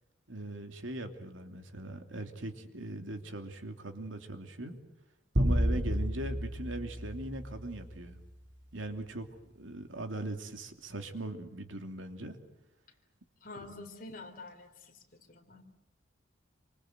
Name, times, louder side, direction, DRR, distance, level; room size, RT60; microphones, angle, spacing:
voice 1, 0.3-4.8 5.3-8.2 8.7-9.3 9.5-12.4, right 1 dB, 85° right, 6 dB, 2.8 m, -40 dB
sound 1, 5.4-8.0, equal, 65° right, 3.3 m, -31 dB
voice 2, 13.4-15.0 15.3-15.6, left 2 dB, 45° left, 5 dB, 3.9 m, -47 dB
28.5 x 25.0 x 8.0 m, 0.92 s
head